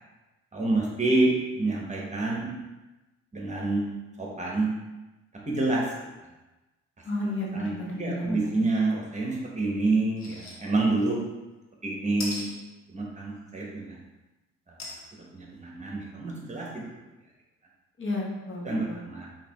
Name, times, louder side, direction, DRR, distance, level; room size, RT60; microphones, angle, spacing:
voice 1, 0.5-2.5 3.3-3.9 4.2-4.7 5.5-5.9 7.5-11.2 11.8-12.5 12.9-14.0 15.3-16.9 18.6-19.3, right 2 dB, 25° right, -2 dB, 1.1 m, -27 dB
voice 2, 7.0-8.5 18.0-19.0, left 1 dB, 40° left, -2 dB, 1.1 m, -32 dB
sound 1, 10.2-10.5 11.0-11.1 12.2-12.5 14.8-15.0 15.6-15.7 15.9-16.0, left 2 dB, 65° left, 1.1 m, -37 dB
4.7 x 3.0 x 3.5 m, 1.1 s
cardioid pair, 90°, 30 cm